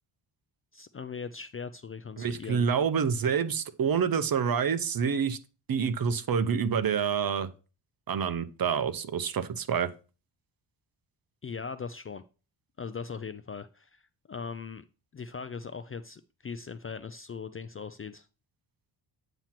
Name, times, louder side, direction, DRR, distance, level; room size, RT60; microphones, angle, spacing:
voice 1, 0.7-2.7 11.4-12.2 12.8-14.0 14.3-14.8 15.1-18.3, left 5 dB, 30° left, 12 dB, 0.4 m, -39 dB
voice 2, 2.2-5.4 5.7-7.5 8.1-9.9, right 7 dB, 45° right, 13 dB, 0.8 m, -27 dB
8.8 x 3.0 x 5.8 m, 0.34 s
cardioid pair, 80°, 50 cm